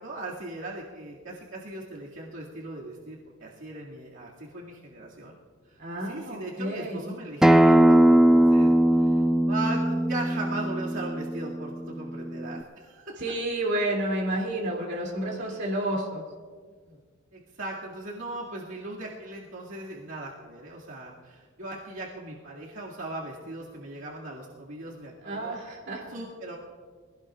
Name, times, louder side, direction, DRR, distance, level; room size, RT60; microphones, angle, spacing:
voice 1, 0.0-5.4 5.7-13.3 15.4-15.6 16.9-17.0 17.3-25.6 26.1-26.6, right 2 dB, 80° right, -5 dB, 2.2 m, -39 dB
voice 2, 5.8-7.2 13.2-16.2 25.2-26.0, right 1 dB, 60° right, -2 dB, 2.8 m, -30 dB
Acoustic guitar, 7.4-12.6, right 1 dB, 5° right, 0.4 m, -20 dB
24.0 x 17.5 x 2.4 m, 1.5 s
head